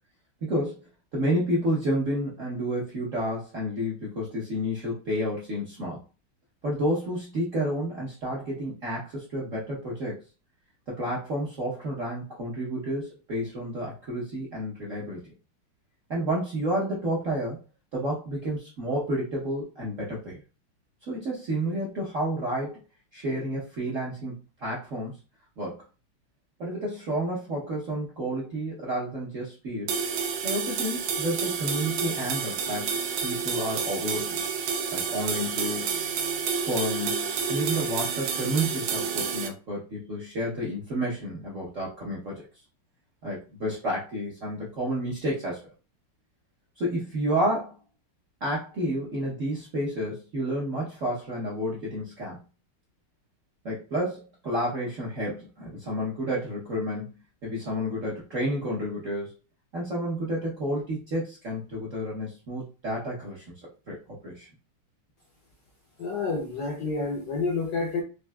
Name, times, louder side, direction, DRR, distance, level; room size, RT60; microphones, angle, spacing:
voice 1, 0.4-0.8 1.1-6.0 6.6-10.2 10.9-15.2 16.1-17.6 17.9-20.4 21.1-22.8 23.1-25.2 25.6-25.8 26.6-29.9 30.4-34.4 34.9-36.0 36.6-42.4 43.2-45.6 46.8-47.8 48.4-52.4 53.6-57.1 57.4-59.3 59.7-64.5, equal, 55° right, -6 dB, 0.8 m, -30 dB
sound 1, 29.9-39.5, right 6 dB, 75° right, 1.3 m, -29 dB
voice 2, 66.0-68.0, left 3 dB, 70° left, -1 dB, 1.0 m, -29 dB
4.4 x 2.5 x 2.2 m, 0.33 s
omnidirectional pair, 2.4 m